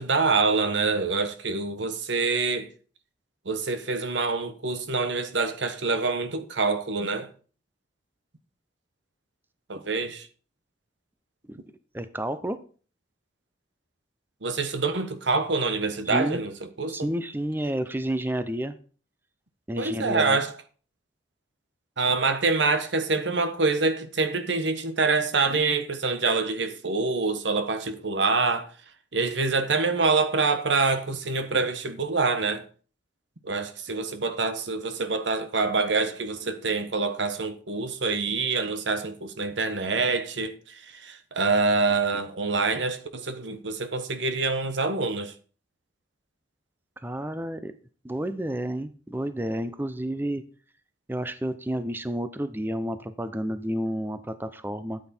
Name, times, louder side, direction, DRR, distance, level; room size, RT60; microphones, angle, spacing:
voice 1, 0.0-2.7 3.4-7.3 9.7-10.3 14.4-16.5 16.8-17.1 19.8-20.5 22.0-28.7 29.1-32.6 33.4-45.3, right 4 dB, 80° right, 1.2 m, -26 dB
voice 2, 11.9-12.6 16.1-16.4 16.9-18.7 19.7-20.4 47.0-47.7 48.0-50.4 51.1-55.0, right 1 dB, 10° right, 0.6 m, -30 dB
13.0 x 8.1 x 4.4 m
head